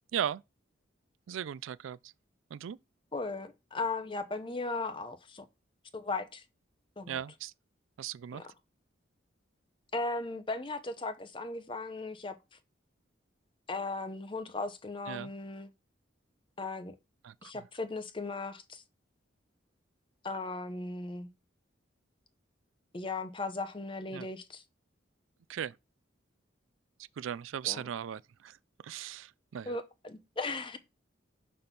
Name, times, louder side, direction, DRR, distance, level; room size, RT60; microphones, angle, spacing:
voice 1, 0.1-0.4 1.3-2.1 2.5-2.8 7.1-7.5 8.0-8.5 15.1-15.3 17.2-17.5 24.1-24.3 25.5-25.8 27.2-28.6 28.8-29.8, right 9 dB, 85° right, 0.3 m, -37 dB
voice 2, 3.1-5.5 5.9-6.4 7.0-7.2 8.3-8.4 9.9-12.4 13.7-15.7 16.6-16.9 17.4-18.8 20.2-21.3 22.9-24.6 27.6-27.8 29.7-30.8, left 3 dB, 25° left, 0.6 m, -37 dB
5.2 x 4.1 x 5.9 m
head